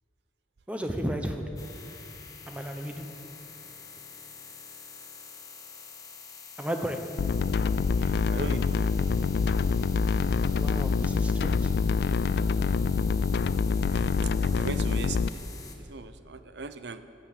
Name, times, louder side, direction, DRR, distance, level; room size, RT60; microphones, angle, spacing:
voice 1, 0.7-1.5 2.5-3.1 6.6-7.0 10.5-11.7, equal, 10° right, 5 dB, 0.9 m, -33 dB
sound 1, 1.6-15.8, left 5 dB, 20° left, 1.1 m, -46 dB
sound 2, 7.2-15.3, left 5 dB, 60° left, 0.3 m, -26 dB
voice 2, 8.0-9.2 13.6-14.1 14.4-15.5 15.8-17.1, right 4 dB, 70° right, 11 dB, 0.6 m, -40 dB
13.0 x 8.9 x 7.5 m, 2.7 s
head